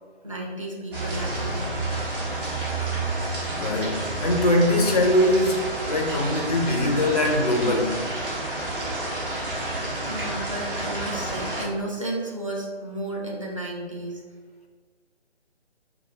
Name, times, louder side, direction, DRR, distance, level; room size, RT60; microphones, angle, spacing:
voice 1, 0.2-1.8 10.0-14.2, right 1 dB, 30° right, -2 dB, 0.5 m, -33 dB
sound 1, 0.9-11.6, right 2 dB, 50° right, 1.2 m, -30 dB
voice 2, 3.6-8.0, left 1 dB, 35° left, 1 dB, 0.4 m, -22 dB
4.5 x 2.4 x 2.8 m, 1.5 s
figure-of-eight pair, 145°, 34 cm